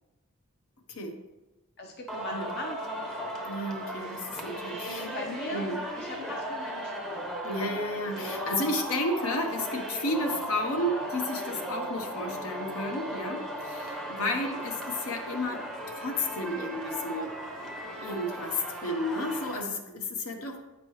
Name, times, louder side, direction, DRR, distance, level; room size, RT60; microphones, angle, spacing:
voice 1, 1.8-3.3 5.0-5.7 6.0-7.3, left 1 dB, 45° left, 2 dB, 0.7 m, -39 dB
Singing, 2.1-19.6, equal, ahead, 0.7 m, -36 dB
voice 2, 3.5-5.1 5.5-5.8 7.4-15.6 15.9-17.4 18.0-20.6, left 1 dB, 70° left, 4 dB, 0.9 m, -32 dB
8.7 x 5.2 x 3.1 m, 1.1 s
head